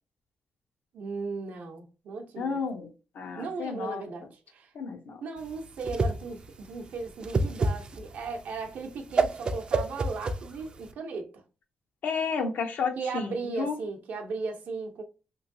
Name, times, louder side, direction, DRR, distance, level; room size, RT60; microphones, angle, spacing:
voice 1, 0.9-2.6 3.4-4.7 5.2-11.4 13.0-15.0, right 4 dB, 75° right, 0.6 m, -36 dB
voice 2, 2.4-4.0 4.7-5.2 12.0-13.8, left 5 dB, 75° left, 0.5 m, -32 dB
Whoosh swoosh swish, 5.4-10.9, right 3 dB, 35° right, 0.3 m, -29 dB
3.0 x 2.6 x 2.6 m
cardioid pair, 135°, 3 cm